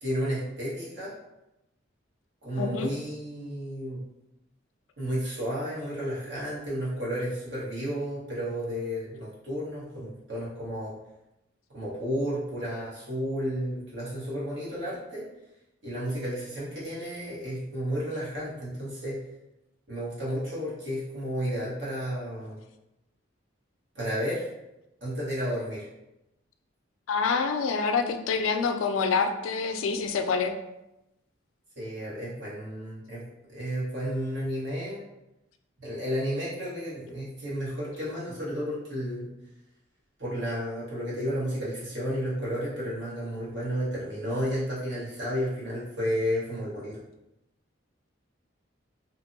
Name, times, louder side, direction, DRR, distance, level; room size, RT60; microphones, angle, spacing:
voice 1, 0.0-1.1 2.4-4.0 5.0-10.9 11.7-15.2 15.8-19.2 19.9-22.6 23.9-24.4 25.0-25.9 31.7-33.2 33.5-35.0 35.8-39.3 40.2-47.0, equal, 65° right, -8 dB, 1.4 m, -32 dB
voice 2, 2.6-2.9 27.1-30.5, left 5 dB, 85° left, 7 dB, 0.3 m, -26 dB
2.8 x 2.6 x 2.7 m, 0.91 s
head